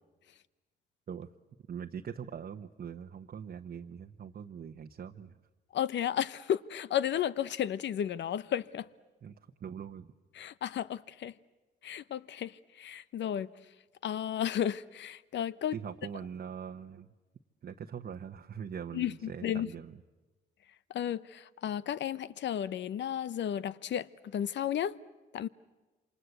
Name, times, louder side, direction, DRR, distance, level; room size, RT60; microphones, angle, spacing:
voice 1, 1.7-5.4 9.2-10.1 15.7-17.1 17.6-20.0, right 7 dB, 50° right, 1.0 m, -42 dB
voice 2, 5.7-8.9 10.3-11.3 11.8-13.5 14.0-15.7 18.9-19.7 20.9-25.0 25.3-25.5, left 10 dB, 65° left, 0.9 m, -33 dB
28.0 x 26.0 x 8.2 m
cardioid pair, 90°, 20 cm